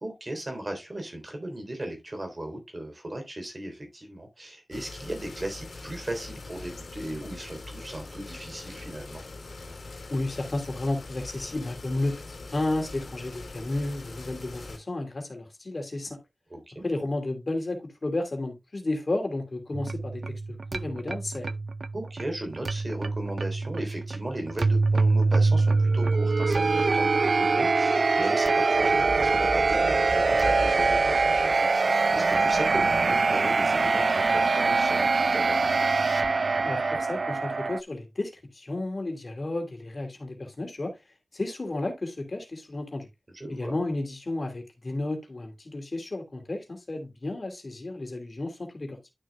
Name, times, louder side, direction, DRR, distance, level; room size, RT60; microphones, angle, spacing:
voice 1, 0.0-9.2 16.5-16.9 21.9-35.9 43.3-43.8, right 1 dB, 40° right, 3.4 m, -37 dB
sound 1, 4.7-14.8, left 3 dB, 90° left, 2.5 m, -42 dB
voice 2, 10.1-16.2 16.8-20.2 20.5-21.5 36.6-40.9 41.3-43.1 43.5-49.0, left 2 dB, 60° left, 2.8 m, -32 dB
sound 2, 19.7-37.8, right 3 dB, 75° right, 0.4 m, -24 dB
sound 3, 28.7-31.8 32.3-33.2, equal, 60° right, 3.3 m, -38 dB
11.5 x 6.5 x 2.2 m
wide cardioid pair, 60°, 0 cm